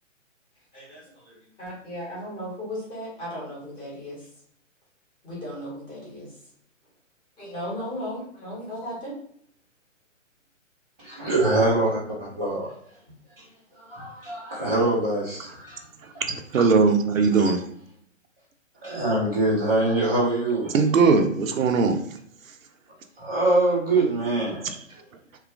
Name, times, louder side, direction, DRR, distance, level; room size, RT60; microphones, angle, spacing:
voice 1, 0.7-4.2 5.2-6.3 7.4-9.1, equal, 10° left, -6 dB, 0.9 m, -36 dB
voice 2, 11.0-12.7 13.9-15.8 16.5-16.6 18.8-20.7 23.2-24.7, right 2 dB, 10° right, -18 dB, 0.4 m, -24 dB
voice 3, 16.5-17.6 20.7-22.1, right 4 dB, 80° right, 6 dB, 0.5 m, -19 dB
2.9 x 2.3 x 2.3 m, 0.63 s
figure-of-eight pair, 135°, 39 cm